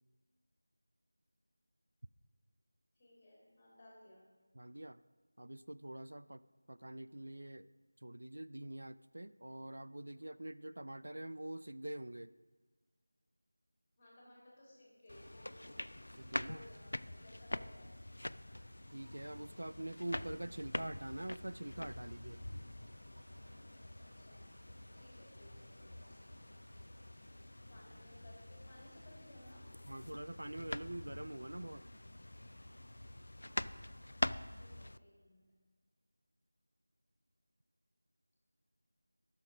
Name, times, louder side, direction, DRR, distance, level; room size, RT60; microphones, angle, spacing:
voice 1, 2.9-4.2 14.0-15.8 16.5-17.9 18.4-18.7 24.0-24.4 24.9-26.2 27.7-29.8 33.4-34.0 34.5-35.4, left 1 dB, 15° left, -5 dB, 2.6 m, -60 dB
voice 2, 4.5-5.0 5.4-6.4 6.7-7.7 8.0-12.3 16.2-16.6 18.9-22.4 29.9-31.8, right 1 dB, 80° right, 15 dB, 0.3 m, -45 dB
sound 1, 14.9-29.4, right 1 dB, 50° right, 1.2 m, -70 dB
sound 2, 15.1-35.0, left 1 dB, 75° left, 0.3 m, -45 dB
11.5 x 6.5 x 5.0 m, 1.4 s
figure-of-eight pair, 175°, 0 cm